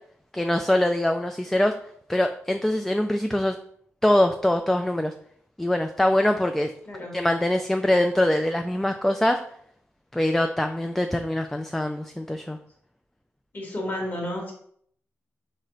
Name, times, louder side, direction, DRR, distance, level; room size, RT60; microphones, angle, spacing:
voice 1, 0.3-1.7 2.1-3.6 4.0-5.1 5.6-6.7 7.1-9.4 10.1-12.6, left 1 dB, 5° left, 6 dB, 0.3 m, -23 dB
voice 2, 6.9-7.3 13.5-14.5, left 1 dB, 45° left, 0 dB, 1.9 m, -32 dB
3.7 x 3.3 x 4.1 m, 0.65 s
cardioid pair, 60°, 5 cm